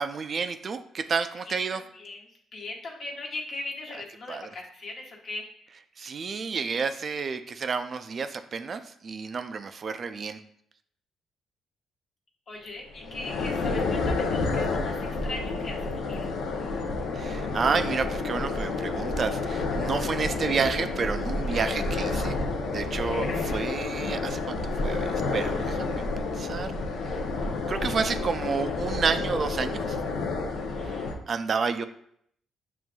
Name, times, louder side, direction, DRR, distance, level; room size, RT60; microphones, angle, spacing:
voice 1, 0.0-1.8 4.3-4.5 6.0-10.4 17.1-22.3 22.7-26.0 26.4-26.7 27.0-27.1 27.7-29.8 30.9-31.0 31.3-31.8, right 5 dB, 45° right, 9 dB, 0.3 m, -30 dB
voice 2, 1.4-5.6 12.5-16.3 24.7-25.1 30.7-31.0, left 2 dB, 55° left, -1 dB, 1.1 m, -40 dB
sound 1, 12.9-31.2, left 3 dB, 85° left, 0.6 m, -30 dB
7.2 x 2.5 x 2.3 m, 0.69 s
cardioid pair, 90°, 0 cm